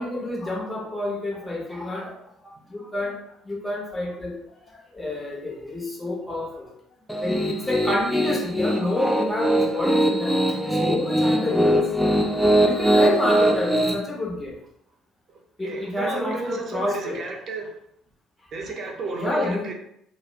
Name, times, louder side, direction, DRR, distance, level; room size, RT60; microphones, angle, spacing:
voice 1, 0.0-2.1 2.4-4.4 4.6-6.7 7.2-12.2 12.7-14.6 15.6-17.2 19.2-19.7, left 1 dB, 15° left, 0.9 m, -29 dB
Piano, 7.1-13.9, right 1 dB, ahead, 0.4 m, -21 dB
voice 2, 15.6-17.7 18.5-19.7, right 3 dB, 50° right, 0.6 m, -32 dB
2.4 x 2.0 x 3.2 m
hypercardioid pair, 55°, 0 cm